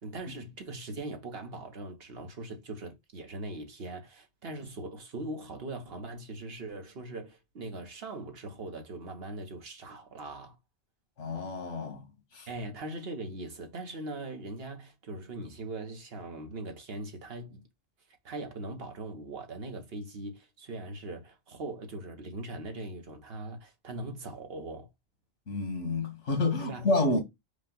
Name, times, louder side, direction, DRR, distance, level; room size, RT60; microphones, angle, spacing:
voice 1, 0.0-10.6 12.5-17.6 18.2-24.9 26.6-26.9, right 2 dB, 55° right, 1.2 m, -40 dB
voice 2, 11.2-12.0 12.3-12.5 25.5-27.2, left 2 dB, 80° left, 1.7 m, -29 dB
5.1 x 2.4 x 3.7 m
omnidirectional pair, 1.2 m